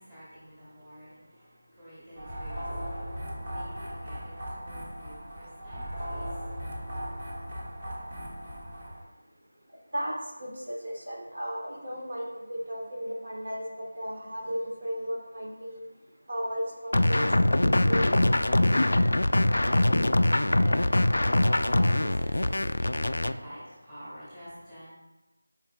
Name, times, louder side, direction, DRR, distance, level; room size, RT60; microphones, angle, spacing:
voice 1, 0.0-7.0 7.8-7.9 8.5-8.9 18.8-24.9, equal, 5° right, -12 dB, 1.6 m, -47 dB
sound 1, 2.2-9.0, equal, 25° right, 1.0 m, -37 dB
voice 2, 9.9-15.8 16.3-18.1 18.9-19.1, equal, 50° right, -2 dB, 1.3 m, -35 dB
sound 2, 16.9-23.3, left 1 dB, 70° left, 0.3 m, -23 dB
8.8 x 5.1 x 2.2 m, 1.1 s
figure-of-eight pair, 180°, 0 cm